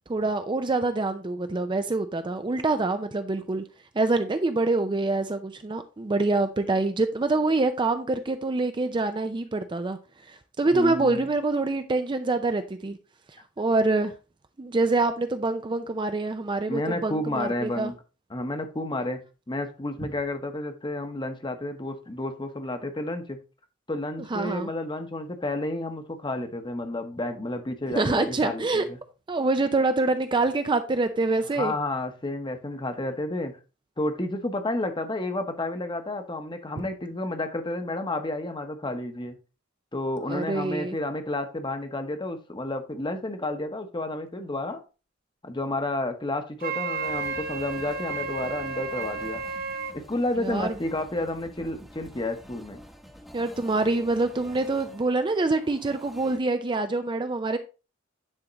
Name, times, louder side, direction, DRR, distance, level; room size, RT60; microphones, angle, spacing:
voice 1, 0.1-3.6 3.9-13.0 13.6-14.1 14.6-17.9 24.3-24.7 27.9-28.9 29.3-31.7 36.8-36.9 40.2-41.0 50.4-50.8 53.3-57.6, right 3 dB, 25° right, 0.5 m, -25 dB
voice 2, 10.7-11.3 16.7-17.9 18.3-19.2 19.5-23.4 23.9-29.0 31.5-33.6 34.0-39.4 39.9-44.8 45.4-49.4 49.9-52.8, left 2 dB, 20° left, 1.0 m, -31 dB
Wind instrument woodwind instrument, 46.6-50.0, right 4 dB, 45° right, 0.9 m, -32 dB
sound 1, 46.9-56.4, equal, ahead, 0.9 m, -48 dB
9.8 x 3.6 x 4.0 m
head